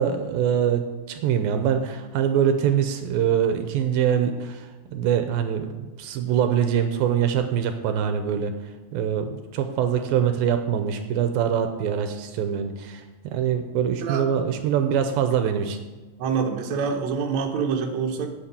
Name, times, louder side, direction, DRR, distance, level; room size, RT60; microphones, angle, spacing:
voice 1, 0.0-8.6 8.9-13.0 13.3-15.8, right 8 dB, 80° right, 7 dB, 2.5 m, -24 dB
voice 2, 16.2-18.3, right 6 dB, 60° right, 2 dB, 2.1 m, -26 dB
8.8 x 7.4 x 8.1 m, 1.2 s
omnidirectional pair, 4.3 m